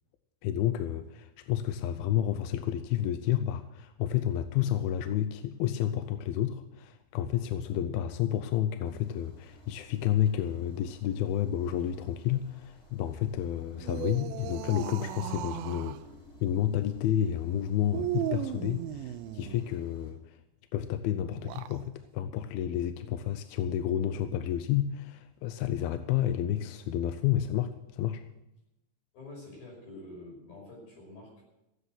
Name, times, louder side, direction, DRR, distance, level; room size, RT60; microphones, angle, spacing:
voice 1, 0.4-16.0 16.4-20.4 20.7-28.2, left 11 dB, 80° left, 10 dB, 2.3 m, -30 dB
sound 1, 8.8-20.1, right 1 dB, ahead, 6.0 m, -55 dB
sound 2, 13.7-16.0 17.9-19.7 21.3-21.8, right 13 dB, 80° right, 2.1 m, -36 dB
voice 2, 29.1-31.4, left 2 dB, 60° left, -2 dB, 7.8 m, -47 dB
16.5 x 8.1 x 7.8 m, 0.91 s
omnidirectional pair, 4.6 m